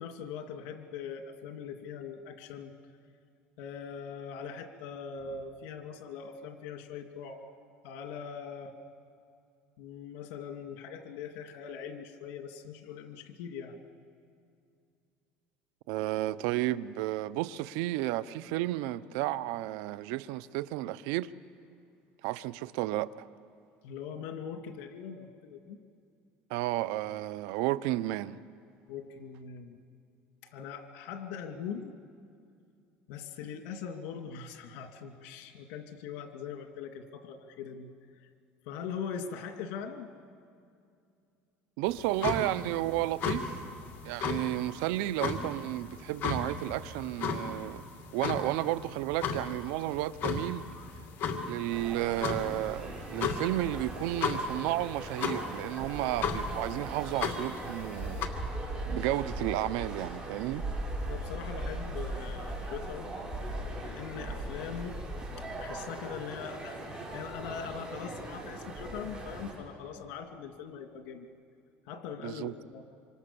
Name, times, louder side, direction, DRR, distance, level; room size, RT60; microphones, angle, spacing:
voice 1, 0.0-2.7 3.6-7.4 7.8-8.7 9.8-13.8 23.8-25.8 28.9-29.8 30.5-31.9 33.1-37.9 38.7-40.1 61.1-63.2 63.8-65.0 65.6-71.3 71.9-72.8, left 7 dB, 80° left, 2.5 m, -41 dB
voice 2, 15.9-21.3 22.2-23.3 26.5-28.4 41.8-43.6 44.0-47.9 48.1-50.7 51.5-58.3 58.9-60.6 72.2-72.5, right 15 dB, 80° right, 0.7 m, -32 dB
sound 1, 41.9-58.3, left 5 dB, 50° left, 2.5 m, -36 dB
sound 2, 51.7-69.5, right 1 dB, 20° right, 6.8 m, -39 dB
26.0 x 26.0 x 7.0 m
cardioid pair, 120°, 5 cm